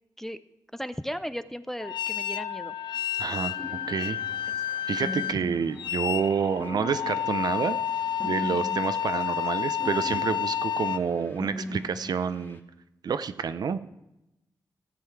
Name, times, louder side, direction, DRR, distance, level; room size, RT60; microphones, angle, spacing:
voice 1, 0.7-2.7, equal, 5° left, 12 dB, 0.4 m, -35 dB
sound 1, 1.8-11.0, left 9 dB, 85° left, 0.5 m, -30 dB
voice 2, 3.2-3.5 3.9-4.2 4.9-7.8 8.2-12.6 13.0-13.8, right 6 dB, 65° right, 12 dB, 0.5 m, -28 dB
sound 2, 3.6-12.6, left 1 dB, 25° left, 0.9 m, -41 dB
13.0 x 7.7 x 4.6 m, 0.90 s
wide cardioid pair, 95°, 7 cm